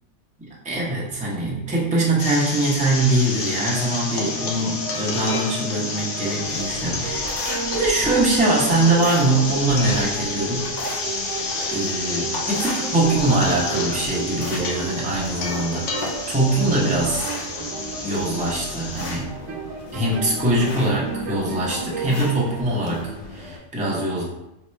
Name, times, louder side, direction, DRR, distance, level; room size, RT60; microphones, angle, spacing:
voice 1, 0.6-7.4 7.7-10.7 11.7-17.3 18.0-19.3 19.9-24.2, right 2 dB, 10° right, -5 dB, 0.5 m, -23 dB
sound 1, 2.2-19.2, left 3 dB, 75° left, 0.9 m, -30 dB
sound 2, 3.7-22.6, right 5 dB, 90° right, 1.0 m, -34 dB
sound 3, 6.4-23.6, left 1 dB, 55° left, 0.5 m, -36 dB
3.0 x 2.2 x 4.2 m, 0.90 s
omnidirectional pair, 1.3 m